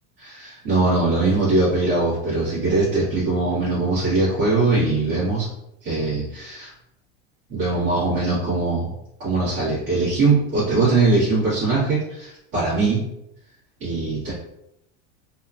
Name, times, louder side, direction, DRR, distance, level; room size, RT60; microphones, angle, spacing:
voice 1, 0.2-5.5 5.8-6.7 7.5-8.9 9.2-13.0 13.8-14.3, right 3 dB, 60° right, -12 dB, 1.5 m, -21 dB
2.9 x 2.2 x 2.5 m, 0.82 s
supercardioid pair, 150°, 32 cm